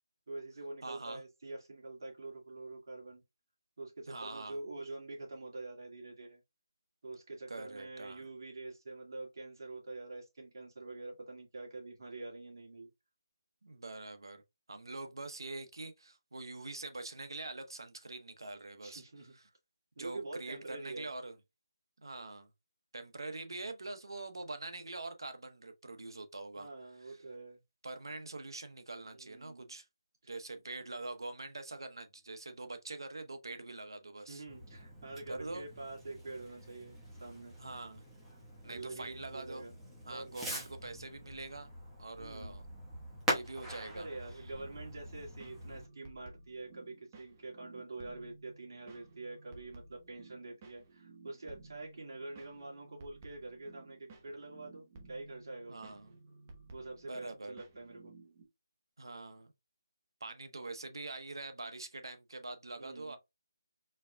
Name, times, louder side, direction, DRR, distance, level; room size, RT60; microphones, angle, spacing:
voice 1, 0.3-3.2 3.8-6.4 7.0-12.9 18.8-19.3 20.0-21.1 26.6-27.6 29.1-29.7 30.2-30.3 34.3-37.6 38.6-39.7 40.1-40.5 42.2-42.6 43.9-56.0 56.7-58.1 62.8-63.2, right 2 dB, 60° right, 1.9 m, -46 dB
voice 2, 0.8-1.2 4.1-4.6 7.5-8.3 13.6-14.4 14.7-19.0 19.3-19.4 20.0-21.3 22.0-22.5 22.9-26.7 27.0-27.2 27.8-29.9 30.3-34.4 35.3-35.7 37.6-38.0 38.6-39.7 40.1-41.7 42.0-42.6 43.3-44.1 55.7-56.2 57.0-57.6 59.0-59.5 60.2-63.2, right 2 dB, 85° right, 0.8 m, -44 dB
Fireworks, 34.5-45.9, equal, 5° right, 1.1 m, -43 dB
sound 1, 44.5-58.4, right 3 dB, 30° right, 0.9 m, -56 dB
4.5 x 3.5 x 2.2 m
figure-of-eight pair, 165°, 2 cm